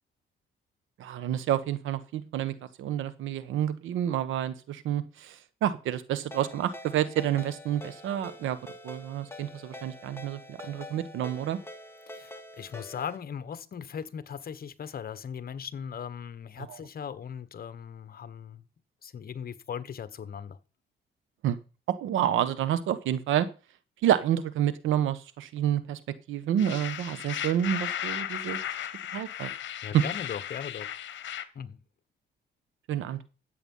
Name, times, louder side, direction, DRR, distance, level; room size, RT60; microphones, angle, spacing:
voice 1, 1.0-8.6 8.8-11.6 16.6-16.8 21.4-21.6 22.0-23.5 24.0-26.0 26.3-28.6 29.1-29.5 29.9-30.0 32.9-33.2, right 11 dB, 85° right, 1.2 m, -29 dB
Ringtone, 6.3-13.2, left 2 dB, 10° left, 2.2 m, -46 dB
voice 2, 12.1-18.6 19.0-20.6 29.8-30.9 31.5-31.8, left 7 dB, 50° left, 1.3 m, -38 dB
sound 1, 26.6-31.4, left 11 dB, 70° left, 1.2 m, -35 dB
13.5 x 8.1 x 5.6 m
cardioid pair, 90°, 20 cm